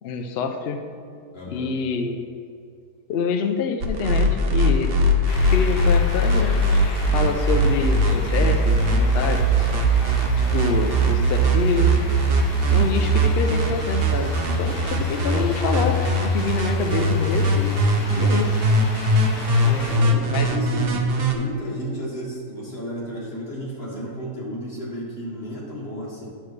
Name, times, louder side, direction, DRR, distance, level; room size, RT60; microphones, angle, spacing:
voice 1, 0.0-0.8 1.5-2.2 3.1-4.9 5.5-6.6 7.1-9.7 10.1-12.0 12.7-17.7 18.1-18.6 20.3-20.5, left 5 dB, 90° left, 6 dB, 0.5 m, -26 dB
voice 2, 1.3-1.7 10.4-10.8 15.0-15.4 19.6-21.1 21.3-26.3, equal, 35° left, -6 dB, 2.1 m, -33 dB
sound 1, 3.8-21.3, right 1 dB, 50° right, 0.8 m, -20 dB
sound 2, 5.3-20.0, left 2 dB, 70° left, 1.6 m, -37 dB
9.7 x 7.1 x 3.2 m, 2.3 s
omnidirectional pair, 1.7 m